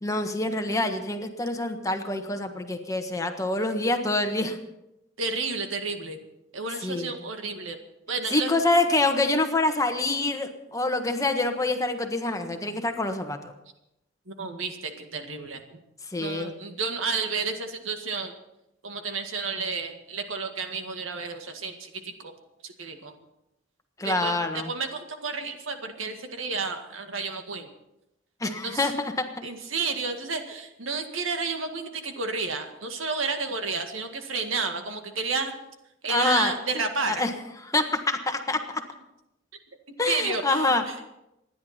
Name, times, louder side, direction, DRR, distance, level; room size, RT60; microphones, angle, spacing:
voice 1, 0.0-4.6 6.8-7.1 8.3-13.5 16.1-16.5 24.0-24.7 28.4-29.3 36.1-36.5 37.1-37.3 37.6-38.8 40.0-40.8, left 2 dB, 15° left, 6 dB, 1.4 m, -26 dB
voice 2, 5.2-6.2 6.5-7.8 8.1-8.5 14.3-15.8 16.2-18.3 18.8-22.3 22.6-23.1 24.0-27.7 28.4-28.9 29.4-35.6 36.0-37.2 40.1-41.1, right 4 dB, 85° right, 5 dB, 1.9 m, -31 dB
26.5 x 10.5 x 4.3 m, 0.86 s
head